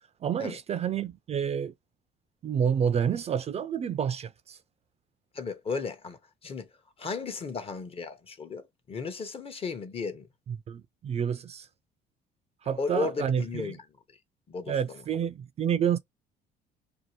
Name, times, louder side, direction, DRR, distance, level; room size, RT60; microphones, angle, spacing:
voice 1, 0.2-1.7 2.4-4.6 10.5-11.7 12.6-13.7 14.7-16.0, right 8 dB, 40° right, 0.4 m, -29 dB
voice 2, 5.3-6.7 7.0-10.3 12.8-13.8 14.5-15.0, left 4 dB, 35° left, 0.8 m, -35 dB
2.7 x 2.4 x 2.9 m
cardioid pair, 110°, 17 cm